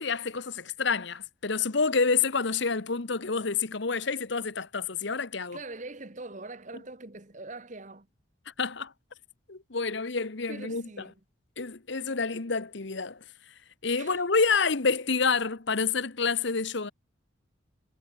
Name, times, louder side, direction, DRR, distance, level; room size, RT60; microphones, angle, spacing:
voice 1, 0.0-5.6 8.6-8.9 9.5-10.8 11.6-13.2 13.8-16.9, left 4 dB, 60° left, 1.0 m, -28 dB
voice 2, 5.5-8.1 10.5-11.2 14.0-14.2, right 2 dB, 35° right, 1.4 m, -42 dB
head